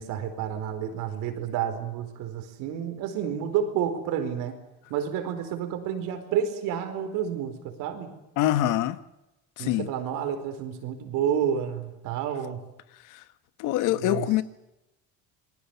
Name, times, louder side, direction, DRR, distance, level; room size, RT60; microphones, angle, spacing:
voice 1, 0.0-4.6 4.9-8.1 9.6-12.6 13.9-14.3, right 8 dB, 85° right, 4.5 m, -30 dB
voice 2, 8.4-9.0 9.6-9.9 13.1-13.2 13.6-14.4, left 13 dB, 70° left, 1.4 m, -24 dB
27.0 x 20.5 x 7.1 m
cardioid pair, 140°, 32 cm